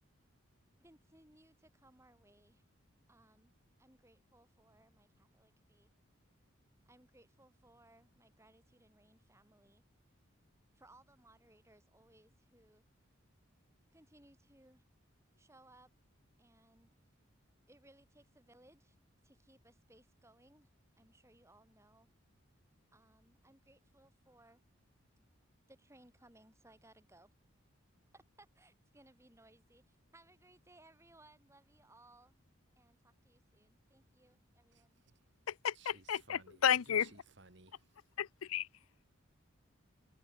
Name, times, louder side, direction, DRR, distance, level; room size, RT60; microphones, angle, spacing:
voice 1, 0.8-2.6 3.1-5.9 6.9-9.8 10.7-12.8 13.9-14.8 15.4-15.9 16.4-16.9 17.7-19.0 19.2-20.7 21.0-22.1 22.9-24.6 25.7-27.3 28.1-32.4 32.8-35.0, right 1 dB, 15° right, 5.6 m, -64 dB
voice 2, 34.7-35.3 35.7-38.0, right 4 dB, 55° right, 2.0 m, -61 dB
voice 3, 35.5-37.1 38.2-38.7, left 9 dB, 80° left, 0.5 m, -32 dB
head